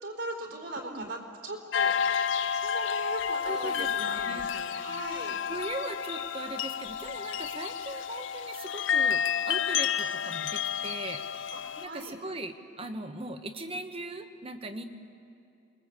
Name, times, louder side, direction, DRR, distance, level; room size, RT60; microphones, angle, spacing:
voice 1, 0.0-5.4 11.5-12.1, right 2 dB, 70° right, 1 dB, 4.0 m, -39 dB
sound 1, 1.7-11.9, left 8 dB, 80° left, 0.7 m, -30 dB
voice 2, 3.5-4.5 5.5-11.3 11.8-14.8, right 2 dB, 30° right, 8 dB, 1.2 m, -39 dB
28.5 x 21.5 x 8.2 m, 2.7 s
head